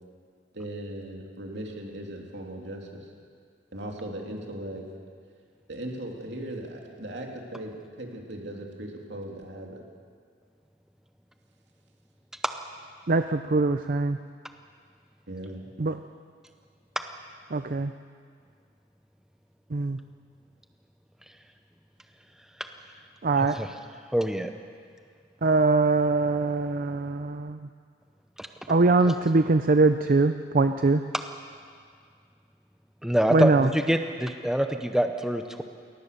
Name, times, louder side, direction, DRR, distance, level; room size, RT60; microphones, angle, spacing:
voice 1, 0.5-3.1 3.7-4.8 5.7-7.7 8.0-9.8 15.3-15.7, right 1 dB, 65° right, 0 dB, 3.1 m, -38 dB
voice 2, 13.1-14.2 15.8-16.0 17.5-17.9 19.7-20.0 23.2-23.6 25.4-27.6 28.7-31.0 33.3-33.7, right 3 dB, 50° right, 9 dB, 0.6 m, -22 dB
voice 3, 23.4-23.7 24.1-24.5 28.4-28.5 33.0-35.6, equal, 5° right, 6 dB, 0.7 m, -25 dB
22.0 x 18.5 x 6.8 m, 2.1 s
head